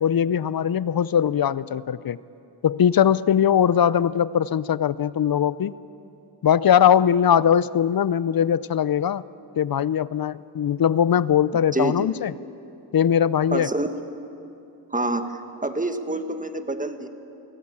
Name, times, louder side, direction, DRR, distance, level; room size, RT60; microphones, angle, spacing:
voice 1, 0.0-2.2 2.6-5.7 6.4-9.2 9.6-12.3 12.9-13.7, left 9 dB, 50° left, 18 dB, 0.6 m, -20 dB
voice 2, 11.7-12.1 13.5-13.9 14.9-17.1, right 2 dB, 15° right, 7 dB, 1.5 m, -27 dB
23.5 x 17.5 x 8.6 m, 2.7 s
cardioid pair, 75°, 46 cm